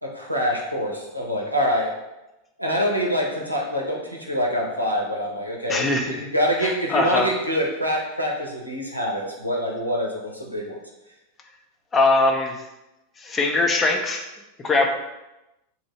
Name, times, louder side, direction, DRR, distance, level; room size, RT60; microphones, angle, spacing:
voice 1, 0.0-1.9 2.6-10.8, equal, 90° right, -2 dB, 0.7 m, -25 dB
voice 2, 5.7-6.3 6.6-7.3 11.9-12.6 13.2-14.2 14.6-14.9, left 2 dB, 20° left, 3 dB, 0.5 m, -21 dB
2.8 x 2.6 x 4.3 m, 0.98 s
figure-of-eight pair, 90°, 0 cm